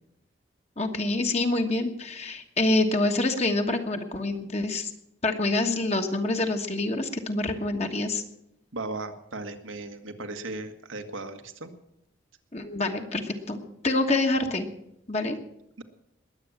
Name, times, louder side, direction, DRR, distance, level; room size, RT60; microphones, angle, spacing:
voice 1, 0.8-4.9 5.2-8.2 12.5-14.7 15.1-15.4, left 2 dB, 35° left, 4 dB, 1.3 m, -26 dB
voice 2, 8.7-11.7 15.8-15.9, right 2 dB, 90° right, 7 dB, 1.7 m, -36 dB
21.0 x 8.6 x 7.3 m, 0.82 s
head